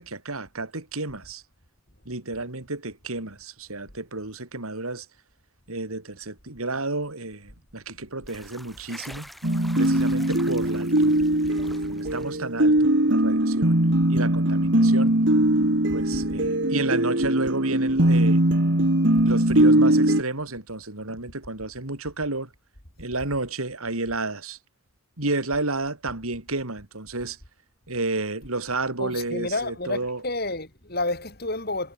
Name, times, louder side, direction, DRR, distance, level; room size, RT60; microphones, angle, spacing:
voice 1, 0.0-1.4 2.1-5.1 5.7-9.3 9.8-11.2 11.9-13.8 14.1-15.1 15.9-18.4 19.2-22.5 23.0-24.6 25.2-27.4 27.9-30.2, right 2 dB, 80° right, 3.6 m, -31 dB
sound 1, 8.3-12.6, equal, ahead, 6.6 m, -46 dB
sound 2, 9.4-20.2, right 1 dB, 55° right, 2.5 m, -21 dB
voice 2, 29.0-31.9, left 2 dB, 45° left, 6.8 m, -30 dB
head